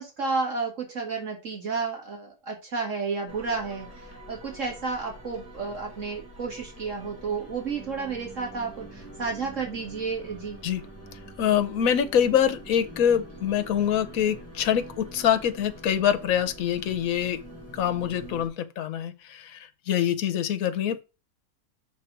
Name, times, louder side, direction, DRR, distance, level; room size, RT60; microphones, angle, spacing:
voice 1, 0.0-10.6, right 4 dB, 55° right, 2.1 m, -31 dB
sound 1, 3.3-18.5, right 1 dB, 10° left, 2.0 m, -45 dB
voice 2, 11.4-17.4 17.7-21.0, left 9 dB, 70° left, 1.2 m, -25 dB
6.0 x 4.1 x 5.9 m
omnidirectional pair, 1.6 m